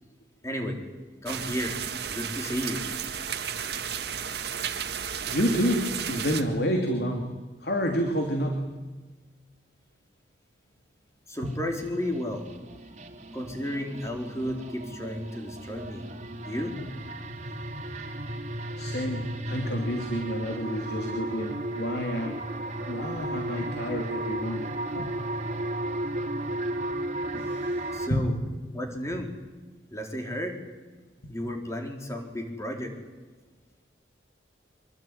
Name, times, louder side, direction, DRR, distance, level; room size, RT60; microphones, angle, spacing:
voice 1, 0.4-0.8 1.2-1.8 2.1-2.8 11.3-12.4 13.3-16.1 16.5-16.8 27.9-28.3 28.7-29.3 29.9-30.6 31.3-32.9, equal, 15° left, 3 dB, 4.2 m, -32 dB
sound 1, 1.3-6.4, right 8 dB, 65° right, 1.9 m, -33 dB
voice 2, 5.3-7.3 7.6-8.7 11.4-11.5 18.8-22.5 22.9-24.7 24.9-25.1 27.3-28.3 31.2-31.3, equal, 60° left, 3 dB, 3.1 m, -29 dB
sound 2, 11.5-28.1, right 1 dB, 40° right, 2.7 m, -34 dB
25.0 x 23.0 x 9.4 m, 1.3 s
head